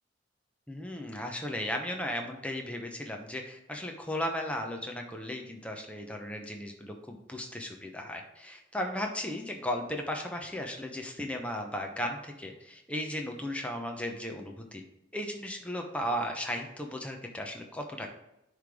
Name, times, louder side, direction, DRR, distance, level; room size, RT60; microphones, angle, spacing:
voice 1, 0.7-14.8 15.1-18.1, left 1 dB, 5° left, 2 dB, 0.7 m, -36 dB
9.9 x 3.3 x 3.6 m, 0.88 s
head